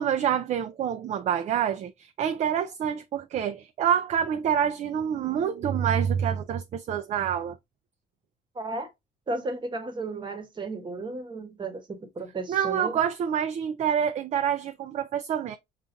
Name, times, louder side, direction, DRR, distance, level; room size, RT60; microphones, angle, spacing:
voice 1, 0.0-7.6 12.5-15.6, right 8 dB, 45° right, 0.4 m, -27 dB
voice 2, 8.5-8.9 9.3-13.0, right 2 dB, 25° right, 1.0 m, -34 dB
5.6 x 2.5 x 2.5 m
cardioid pair, 110°, 17 cm